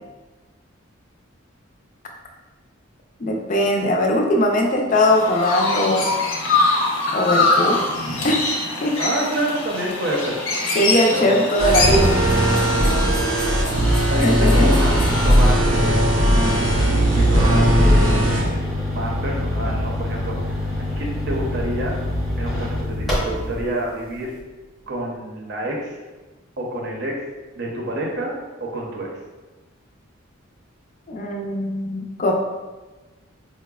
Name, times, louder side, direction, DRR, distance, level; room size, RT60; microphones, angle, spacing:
voice 1, 3.2-6.1 7.1-7.9 8.2-8.5 8.8-9.0 10.8-12.2 14.2-14.7 31.1-32.3, left 1 dB, 40° left, 1 dB, 0.4 m, -20 dB
Chirp tweet, 4.9-15.5, left 3 dB, 90° left, 0.7 m, -24 dB
voice 2, 9.0-10.4 11.1-11.5 13.6-13.8 14.1-16.1 16.6-22.0 22.4-24.3 24.9-26.0 26.6-27.2 27.5-29.1, right 1 dB, 50° right, -2 dB, 0.6 m, -28 dB
sound 1, 11.6-18.4, equal, 90° right, 0.6 m, -18 dB
sound 2, 14.7-23.6, left 1 dB, ahead, 0.6 m, -26 dB
4.6 x 2.1 x 2.3 m, 1.2 s
head